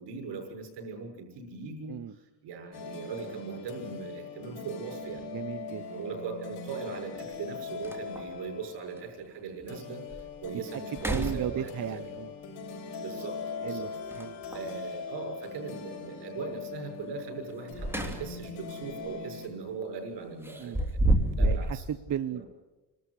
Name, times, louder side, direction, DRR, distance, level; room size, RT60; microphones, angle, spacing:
voice 1, 0.0-5.2 5.9-12.0 13.0-13.9 14.5-20.8 21.4-21.8 22.3-22.5, right 5 dB, 85° right, 2 dB, 6.5 m, -40 dB
sound 1, 2.7-19.5, left 5 dB, 80° left, 5.1 m, -41 dB
sound 2, 5.1-5.2 7.0-7.1 7.5-7.6 7.8-8.4 9.0-9.1 9.6-9.7 10.1-10.5 10.9-12.0 14.1-14.7 17.5-18.5 18.9-19.1 20.4-21.8, right 1 dB, 5° right, 3.0 m, -30 dB
voice 2, 5.3-5.9 10.7-10.8 11.1-12.3 13.6-13.9 14.2-14.4 20.6-20.9 21.3-22.4, right 10 dB, 50° right, 12 dB, 0.8 m, -35 dB
28.0 x 13.0 x 9.8 m, 1.2 s
cardioid pair, 105°, 40 cm